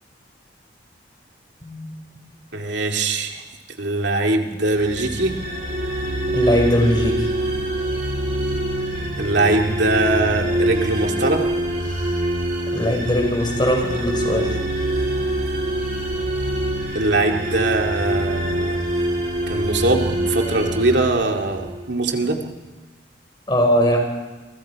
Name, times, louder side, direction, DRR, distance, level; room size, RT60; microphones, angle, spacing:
voice 1, 2.5-3.4 3.8-5.4 9.2-11.4 16.9-18.8 19.5-22.4, right 2 dB, 70° right, 2 dB, 2.4 m, -21 dB
sound 1, 4.7-21.9, right 1 dB, 45° right, 4.2 m, -25 dB
voice 2, 6.3-7.3 11.9-12.2 12.7-14.6 23.5-24.0, equal, 25° left, 2 dB, 5.1 m, -20 dB
29.0 x 25.0 x 4.8 m, 1.3 s
head